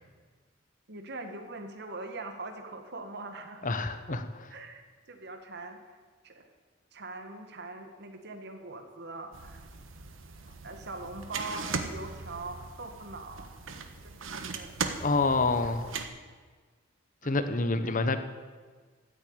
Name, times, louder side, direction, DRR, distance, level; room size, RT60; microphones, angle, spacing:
voice 1, 0.9-3.7 4.5-6.0 6.2-6.5 6.9-9.6 10.6-13.5 14.0-14.8 15.4-15.7 17.2-17.4, right 2 dB, 55° right, 6 dB, 1.9 m, -42 dB
voice 2, 3.6-4.2 15.0-15.9 17.2-18.2, left 3 dB, 40° left, 9 dB, 1.2 m, -27 dB
sound 1, 9.3-16.1, right 4 dB, 75° right, 1.3 m, -39 dB
14.0 x 9.4 x 8.8 m, 1.5 s
head